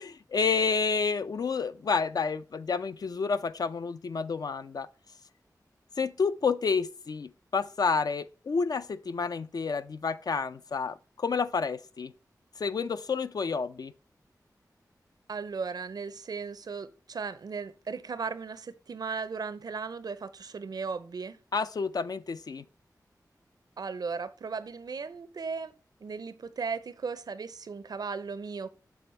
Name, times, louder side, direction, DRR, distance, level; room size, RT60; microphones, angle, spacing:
voice 1, 0.0-4.9 6.0-12.1 12.6-13.9 21.5-22.6, left 5 dB, 65° left, 0.4 m, -29 dB
voice 2, 15.3-21.4 23.8-25.7 26.0-28.7, right 5 dB, 70° right, 0.5 m, -36 dB
7.0 x 3.5 x 4.3 m
wide cardioid pair, 65°, 7 cm